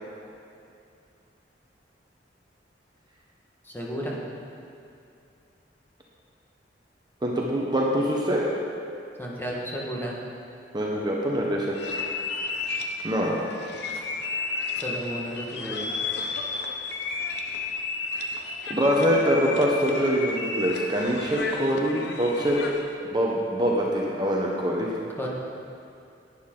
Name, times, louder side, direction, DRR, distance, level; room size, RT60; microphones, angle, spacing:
voice 1, 3.6-4.2 9.2-10.1 14.8-15.9 25.2-25.3, equal, 10° left, -3 dB, 1.4 m, -33 dB
voice 2, 7.2-8.4 10.7-11.8 13.0-13.5 18.7-22.6 23.1-24.9, equal, 25° right, -3 dB, 0.9 m, -24 dB
sound 1, 11.7-22.9, left 4 dB, 65° left, 0.8 m, -33 dB
11.0 x 9.5 x 3.8 m, 2.5 s
head